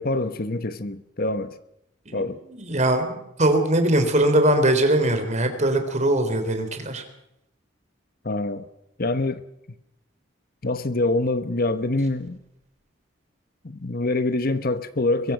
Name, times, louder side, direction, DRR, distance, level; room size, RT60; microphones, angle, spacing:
voice 1, 0.0-1.5 2.1-2.4 8.2-8.6 9.0-9.4 10.6-12.4 13.6-15.3, left 2 dB, 50° left, 1.1 m, -25 dB
voice 2, 2.5-7.0, right 1 dB, 35° right, 3.8 m, -21 dB
23.5 x 22.5 x 6.0 m
head